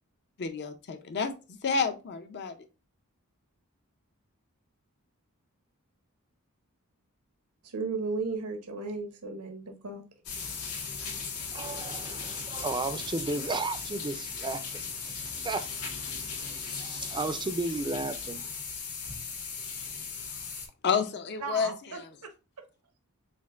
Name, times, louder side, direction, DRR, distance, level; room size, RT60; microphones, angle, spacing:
voice 1, 0.4-1.3 1.6-2.5 20.8-22.1, left 5 dB, 50° left, 0.5 m, -30 dB
voice 2, 7.7-10.0 21.4-22.0, right 4 dB, 85° right, 0.8 m, -35 dB
sound 1, 10.3-20.7, left 5 dB, 85° left, 1.4 m, -37 dB
voice 3, 11.5-15.9 16.5-18.4, right 3 dB, 20° right, 0.4 m, -34 dB
7.3 x 2.5 x 2.4 m
head